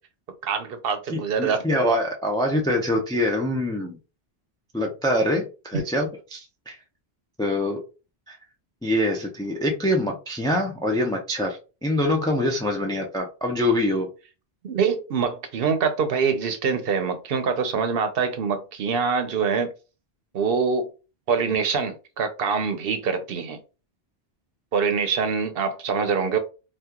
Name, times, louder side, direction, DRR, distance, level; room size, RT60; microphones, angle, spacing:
voice 1, 0.4-1.6 5.7-5.8 14.6-19.7 20.3-20.9 21.3-23.6 24.7-26.4, right 5 dB, 65° right, 0.9 m, -24 dB
voice 2, 1.1-4.0 4.7-6.8 7.4-7.8 8.3-8.4 8.8-14.1, left 1 dB, 5° left, 0.4 m, -24 dB
2.9 x 2.3 x 3.6 m
omnidirectional pair, 1.1 m